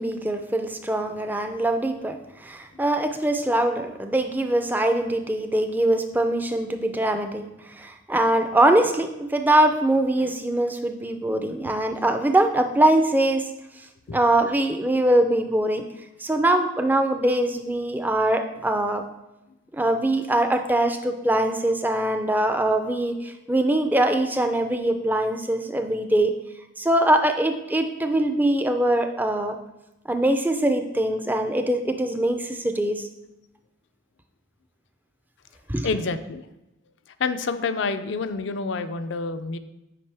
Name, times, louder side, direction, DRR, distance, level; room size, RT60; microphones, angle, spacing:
voice 1, 0.0-13.5 14.1-15.8 16.2-19.0 19.7-26.3 26.8-29.6 30.1-33.1 35.7-35.9, right 1 dB, 10° right, 6 dB, 0.4 m, -22 dB
voice 2, 35.8-36.5 37.2-39.6, left 4 dB, 60° left, 11 dB, 0.4 m, -28 dB
8.4 x 5.0 x 3.4 m, 0.95 s
head